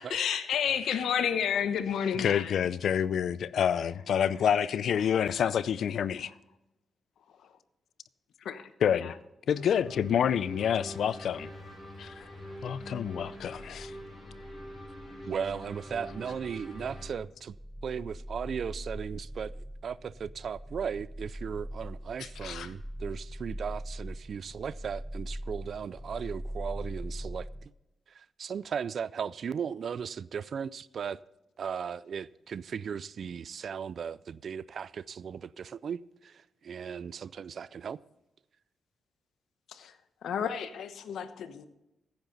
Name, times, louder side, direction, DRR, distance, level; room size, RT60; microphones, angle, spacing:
voice 1, 0.0-2.5 8.4-9.1 22.2-22.7 39.7-39.9 40.2-41.7, left 8 dB, 90° left, 1.0 m, -31 dB
voice 2, 2.2-6.3 8.8-9.2 9.5-11.5 12.0-12.2 12.6-13.9, left 8 dB, 75° left, 0.5 m, -28 dB
sound 1, 9.5-17.0, equal, 30° left, 5.1 m, -44 dB
sound 2, 13.5-27.7, equal, ahead, 0.5 m, -42 dB
voice 3, 15.3-17.5 17.8-27.5 28.1-31.2 31.6-38.0, right 7 dB, 55° right, 0.4 m, -37 dB
14.5 x 10.5 x 4.0 m
wide cardioid pair, 125°, 0 cm